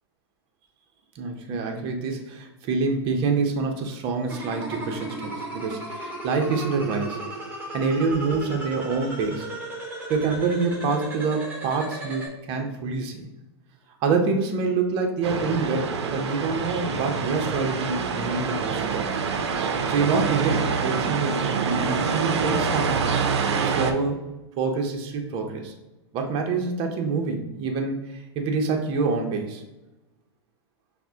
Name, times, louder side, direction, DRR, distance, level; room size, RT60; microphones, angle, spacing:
voice 1, 1.2-7.2 7.7-9.5 10.1-13.2 14.0-19.2 19.9-23.0 23.6-24.2 24.6-25.7 26.1-29.6, right 4 dB, 35° right, 3 dB, 0.6 m, -26 dB
sound 1, 4.3-12.3, right 1 dB, 15° right, 1.1 m, -35 dB
sound 2, 15.2-23.9, right 5 dB, 80° right, 0.5 m, -26 dB
5.8 x 2.1 x 2.7 m, 1.0 s
hypercardioid pair, 130°, 14 cm